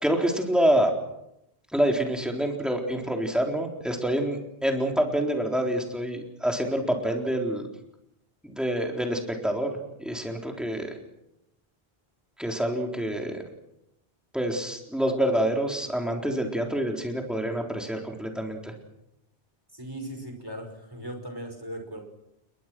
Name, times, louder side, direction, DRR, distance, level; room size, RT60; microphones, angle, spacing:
voice 1, 0.0-0.9 1.7-7.7 8.4-11.0 12.4-13.4 14.3-18.7, right 1 dB, ahead, 1 dB, 3.9 m, -27 dB
voice 2, 19.7-22.0, right 1 dB, 20° right, 4 dB, 5.5 m, -38 dB
30.0 x 21.5 x 6.2 m, 0.84 s
omnidirectional pair, 1.1 m